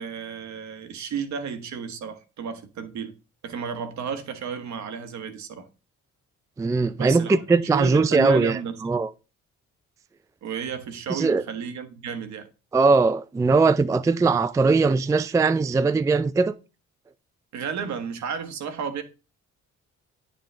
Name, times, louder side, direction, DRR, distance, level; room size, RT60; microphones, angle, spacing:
voice 1, 0.0-3.1 3.4-5.7 7.0-8.8 10.4-12.5 17.5-19.0, right 7 dB, 65° right, 1.2 m, -32 dB
voice 2, 6.6-8.6 8.8-9.1 11.1-11.4 12.7-16.5, right 4 dB, 10° right, 0.3 m, -20 dB
8.9 x 5.3 x 3.3 m
cardioid pair, 90°, 30 cm